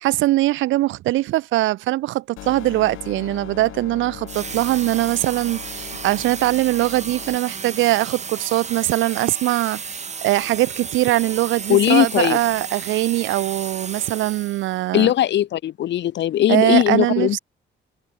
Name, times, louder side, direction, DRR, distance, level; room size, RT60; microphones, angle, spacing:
voice 1, 0.0-15.1 16.5-17.4, right 17 dB, 75° right, 0.4 m, -21 dB
sound 1, 2.4-7.4, left 15 dB, 85° left, 2.3 m, -39 dB
sound 2, 4.3-14.8, right 5 dB, 35° right, 2.2 m, -33 dB
voice 2, 11.7-12.4 14.9-17.4, left 12 dB, 65° left, 0.8 m, -19 dB
cardioid pair, 90°, 20 cm